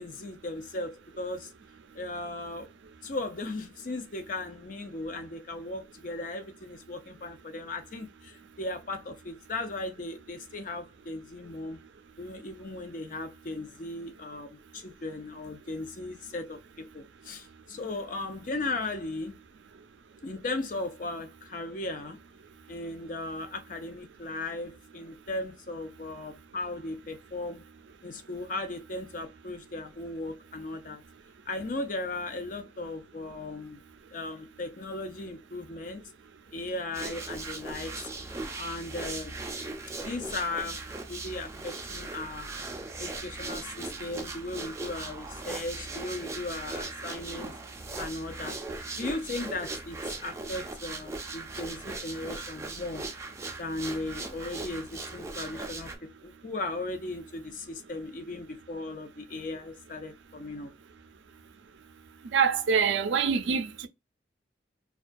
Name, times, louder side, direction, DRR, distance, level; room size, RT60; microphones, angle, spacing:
voice 1, 0.0-1.5 1.9-2.7 3.0-11.8 12.2-19.3 20.2-22.2 22.7-27.6 28.0-31.0 31.5-33.8 34.1-36.0 36.5-38.1 38.6-39.4 40.0-40.8 41.1-42.5 43.0-47.5 48.0-48.6 49.0-53.0 53.6-60.7, left 2 dB, 45° left, 0.5 m, -37 dB
sound 1, 36.9-56.0, right 3 dB, 15° right, 0.4 m, -39 dB
voice 2, 62.3-63.9, right 6 dB, 85° right, 0.4 m, -25 dB
2.3 x 2.2 x 2.5 m
head